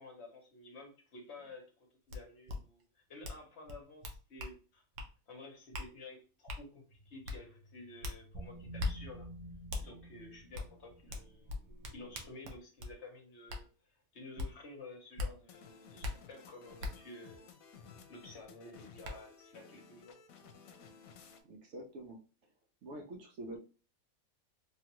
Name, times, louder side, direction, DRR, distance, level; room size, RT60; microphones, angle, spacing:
voice 1, 0.0-1.7 2.1-4.8 5.3-9.3 9.8-17.5 18.1-20.2, left 2 dB, 55° left, 1.0 m, -52 dB
sound 1, 2.1-2.2 2.5-2.6 3.2-3.4 3.7-4.5 5.0-5.1 5.7-5.9 6.5-6.6 7.2-7.4 8.0-8.2 8.8-8.9 9.7-9.8 10.5-10.7 11.1-12.9 13.5-13.6 14.4-14.5 15.2-15.3 16.0-16.1 16.8-16.9 18.4-18.5 19.0-19.1, left 2 dB, 85° right, 1.2 m, -38 dB
sound 2, 6.9-12.3, right 1 dB, 25° right, 0.6 m, -51 dB
sound 3, 15.5-21.4, left 6 dB, 80° left, 1.0 m, -56 dB
voice 2, 21.4-22.2 22.8-23.6, right 1 dB, 65° right, 0.9 m, -46 dB
3.2 x 2.4 x 2.9 m
omnidirectional pair, 1.5 m